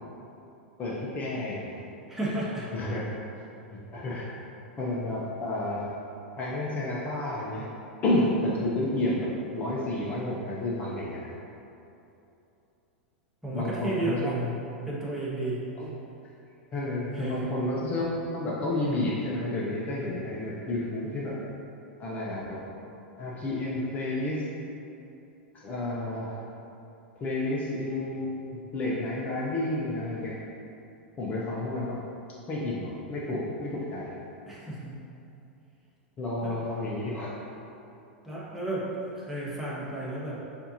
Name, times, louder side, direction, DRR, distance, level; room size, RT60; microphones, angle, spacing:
voice 1, 0.8-1.8 2.7-3.0 3.9-4.3 4.8-5.9 6.4-7.7 8.0-11.3 13.5-14.3 15.8-15.9 16.7-18.0 18.3-21.3 22.0-22.6 23.2-24.5 25.5-26.4 27.2-30.4 31.2-32.0 32.5-34.1 36.2-37.3, left 1 dB, 25° left, -6 dB, 0.7 m, -30 dB
voice 2, 2.1-2.7 13.4-14.6 14.8-15.9 17.1-17.5 34.5-34.9 36.4-36.6 38.2-40.4, right 1 dB, 5° right, -8 dB, 1.2 m, -32 dB
6.6 x 2.7 x 2.7 m, 2.8 s
hypercardioid pair, 95°, 6 cm